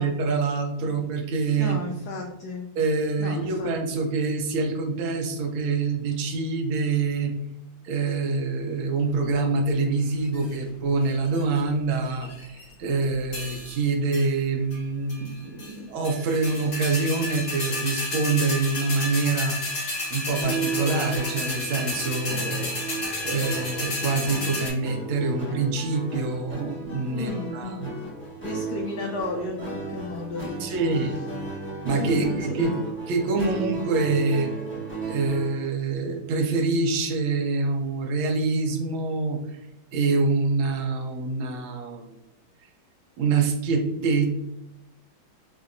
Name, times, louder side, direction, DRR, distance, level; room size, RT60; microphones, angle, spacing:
voice 1, 0.0-1.8 2.8-7.3 7.8-19.6 20.1-28.0 30.6-31.3 31.8-32.8 33.1-34.5 35.1-39.4 39.9-42.2 43.2-44.3, right 3 dB, 75° right, 3 dB, 1.4 m, -25 dB
voice 2, 1.5-2.7 3.2-4.0 27.1-27.9 28.4-30.9 31.9-32.7, left 2 dB, 85° left, 1 dB, 0.8 m, -34 dB
sound 1, 10.1-10.5 11.1-11.6 12.1-12.7 13.3-13.8 14.1-14.3 14.7-14.8 15.1-15.7 16.0-24.7, left 2 dB, 50° left, 1.6 m, -32 dB
sound 2, 20.4-35.6, right 4 dB, 10° left, 0.5 m, -35 dB
4.1 x 2.7 x 2.5 m, 0.94 s
omnidirectional pair, 2.2 m